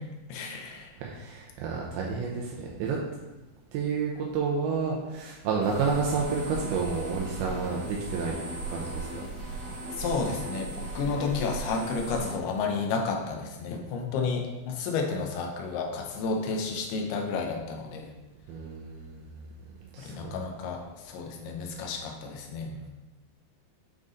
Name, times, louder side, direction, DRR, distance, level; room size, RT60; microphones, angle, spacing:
voice 1, 0.3-0.9 10.0-18.1 20.0-22.8, left 4 dB, 85° left, 2 dB, 2.8 m, -31 dB
voice 2, 1.0-3.0 3.7-9.3 18.5-19.2 19.9-20.4, right 5 dB, 85° right, -2 dB, 2.5 m, -30 dB
sound 1, 5.6-12.3, right 2 dB, 45° right, 3.1 m, -37 dB
7.7 x 3.7 x 3.9 m, 1.1 s
omnidirectional pair, 4.5 m